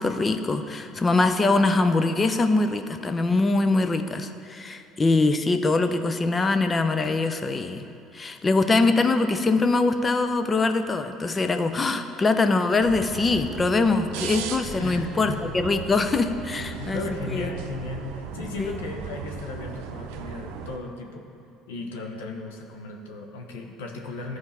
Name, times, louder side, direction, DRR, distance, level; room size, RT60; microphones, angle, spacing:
voice 1, 0.0-7.9 8.1-17.0 17.3-17.5 18.6-18.8, left 3 dB, 30° left, 8 dB, 0.6 m, -23 dB
sound 1, 12.8-20.8, right 6 dB, 75° right, 0.6 m, -37 dB
voice 2, 14.8-15.6 16.7-21.3 21.7-24.4, left 3 dB, 85° left, 2 dB, 1.0 m, -36 dB
14.0 x 4.7 x 4.3 m, 2.6 s
hypercardioid pair, 75°, 0 cm